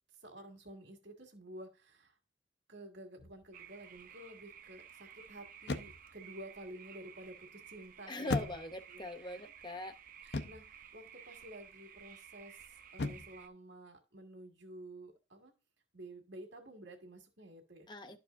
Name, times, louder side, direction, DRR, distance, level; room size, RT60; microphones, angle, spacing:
voice 1, 0.1-2.2 2.7-8.5 8.9-9.5 10.2-15.5 15.9-17.9, right 1 dB, 70° right, 2 dB, 2.0 m, -51 dB
sound 1, 3.2-3.6 5.6-6.2 8.3-9.0 10.3-10.8 13.0-13.4, left 3 dB, 60° left, 0.5 m, -38 dB
sound 2, 3.5-13.5, right 9 dB, 45° right, 0.6 m, -55 dB
voice 2, 8.1-10.0 17.9-18.2, left 2 dB, 25° left, 8 dB, 0.7 m, -41 dB
12.0 x 4.7 x 2.5 m, 0.29 s
head